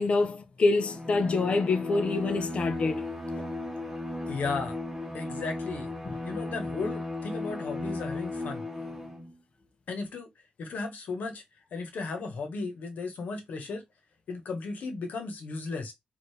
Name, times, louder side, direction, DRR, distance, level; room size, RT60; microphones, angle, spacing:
voice 1, 0.0-3.0 3.4-3.5 6.1-6.2, left 3 dB, 45° left, 0.7 m, -26 dB
Bowed string instrument, 0.8-9.3, left 2 dB, 5° right, 1.1 m, -36 dB
voice 2, 4.3-4.8 5.1-5.9 6.2-8.6 9.9-10.3 10.6-11.4 11.7-13.8 14.3-15.9, left 4 dB, 70° left, 1.2 m, -35 dB
4.6 x 2.7 x 3.3 m
wide cardioid pair, 140°, 3 cm